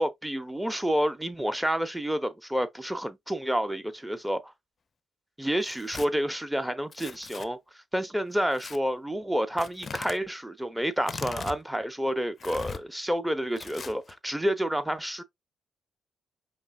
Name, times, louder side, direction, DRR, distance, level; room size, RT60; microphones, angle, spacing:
voice 1, 0.0-4.5 5.4-7.6 7.9-15.2, equal, 5° right, 0.8 m, -29 dB
Tearing, 5.6-6.1 6.9-7.5 8.5-8.8 9.6-10.2 11.0-11.6 12.4-12.8 13.6-14.1, left 5 dB, 40° left, 0.5 m, -39 dB
5.3 x 3.2 x 2.4 m
cardioid pair, 90°, 0 cm